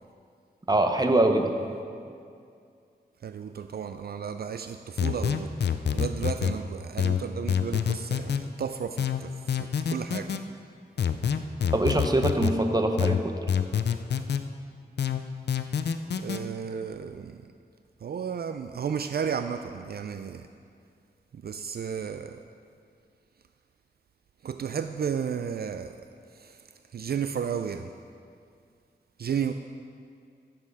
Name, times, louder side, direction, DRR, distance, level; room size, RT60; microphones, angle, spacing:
voice 1, 0.7-1.5 11.7-13.2, right 1 dB, 25° right, 5 dB, 1.0 m, -23 dB
voice 2, 3.2-5.5 5.9-9.3 9.6-10.3 16.2-17.4 18.0-20.4 21.4-22.4 24.4-25.9 26.4-26.5 26.9-27.9 29.2-29.5, right 7 dB, 65° right, 8 dB, 0.4 m, -33 dB
sound 1, 5.0-6.6 7.0-8.4 9.0-10.4 11.0-12.6 13.0-14.4 15.0-16.4, left 8 dB, 80° left, 0.5 m, -26 dB
14.0 x 7.7 x 4.8 m, 2.4 s
wide cardioid pair, 85°, 17 cm